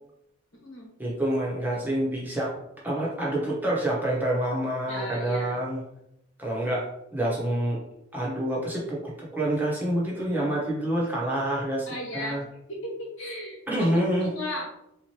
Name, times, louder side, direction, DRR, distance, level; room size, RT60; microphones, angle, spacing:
voice 1, 1.0-2.5 2.8-5.8 6.4-7.8 8.1-11.9 12.1-12.4 13.7-14.3, right 1 dB, 10° right, -5 dB, 0.9 m, -27 dB
voice 2, 1.5-1.8 4.9-5.6 11.9-12.4 12.7-14.8, left 1 dB, 90° left, -1 dB, 1.3 m, -36 dB
3.9 x 3.0 x 2.9 m, 0.82 s
head